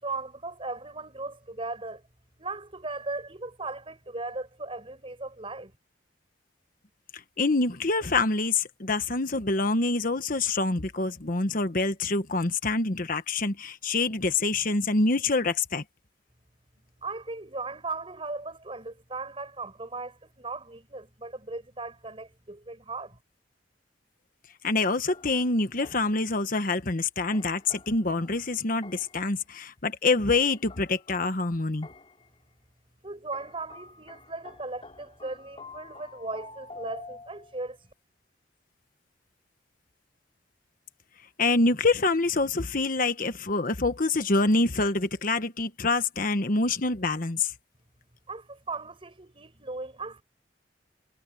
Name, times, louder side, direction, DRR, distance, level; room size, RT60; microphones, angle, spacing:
voice 1, 0.0-2.0 2.4-5.7 17.0-23.2 33.0-37.8 48.3-50.2, right 3 dB, 30° right, 4.9 m, -37 dB
voice 2, 7.1-15.8 24.6-31.9 41.4-47.5, left 3 dB, 50° left, 1.2 m, -26 dB
sound 1, 25.1-26.3 27.3-29.3 30.3-32.3 33.3-37.6, left 3 dB, 30° left, 3.7 m, -48 dB
head